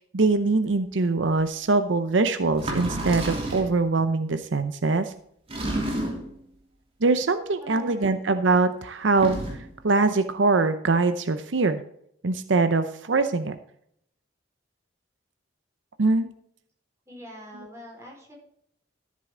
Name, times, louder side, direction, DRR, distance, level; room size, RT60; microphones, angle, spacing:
voice 1, 0.1-5.1 7.0-11.8 12.2-13.6 16.0-16.3, right 3 dB, 75° right, 10 dB, 0.7 m, -23 dB
sound 1, 1.4-1.5 2.5-3.8 5.5-6.4 9.1-9.7, right 1 dB, 30° right, 2.9 m, -30 dB
voice 2, 7.6-8.2 17.1-18.3, equal, 15° right, -2 dB, 4.5 m, -43 dB
13.5 x 7.6 x 3.8 m, 0.70 s
head